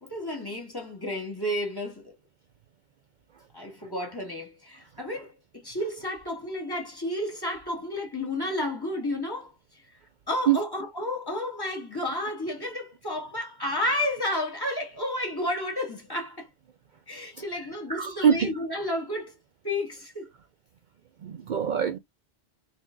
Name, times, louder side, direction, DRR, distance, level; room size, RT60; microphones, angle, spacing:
voice 1, 0.0-2.1 3.5-9.5 10.3-16.5 17.1-19.3 19.6-20.3, left 1 dB, 20° left, 1.9 m, -31 dB
voice 2, 17.9-18.5 21.2-22.0, right 8 dB, 55° right, 0.6 m, -23 dB
3.9 x 3.6 x 2.4 m
omnidirectional pair, 1.1 m